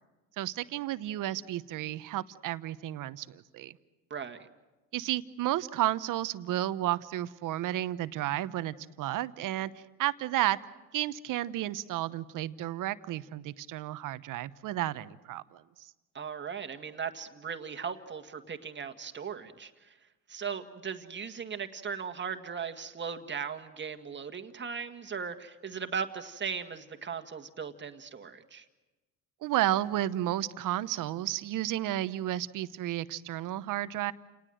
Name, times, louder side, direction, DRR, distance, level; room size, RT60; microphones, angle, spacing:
voice 1, 0.4-3.8 4.9-10.6 10.9-15.9 29.4-34.1, right 14 dB, 60° right, 14 dB, 1.0 m, -32 dB
voice 2, 4.1-4.5 16.1-20.0 20.3-28.6, right 6 dB, 30° right, 8 dB, 1.8 m, -38 dB
29.5 x 19.0 x 7.8 m, 1.1 s
supercardioid pair, 95°, 36 cm